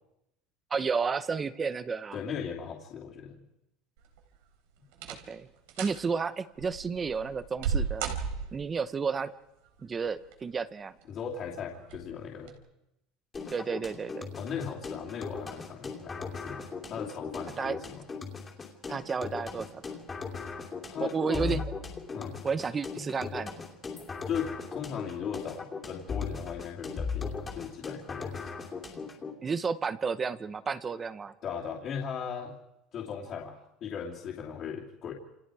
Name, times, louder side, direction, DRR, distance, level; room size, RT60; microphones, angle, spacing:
voice 1, 0.7-2.2 5.1-5.5 5.8-8.1 8.5-9.3 9.8-10.9 13.5-14.3 17.6-17.8 18.9-19.8 21.0-21.6 22.4-23.6 29.4-31.3, right 5 dB, 15° right, 14 dB, 0.9 m, -32 dB
voice 2, 2.1-3.4 11.1-12.6 14.4-18.0 20.9-21.6 22.1-22.4 24.3-28.5 31.4-32.5 32.9-35.1, left 7 dB, 35° left, -5 dB, 2.9 m, -38 dB
sound 1, 4.0-4.4 4.9-5.4 5.7-6.0 6.6-8.8 10.0-10.6 11.0-11.1 11.8-12.1 12.4-12.5, right 6 dB, 85° right, 4.0 m, -34 dB
sound 2, 13.3-29.3, left 5 dB, 15° left, 2.8 m, -38 dB
29.5 x 28.5 x 4.9 m, 0.88 s
cardioid pair, 175°, 0 cm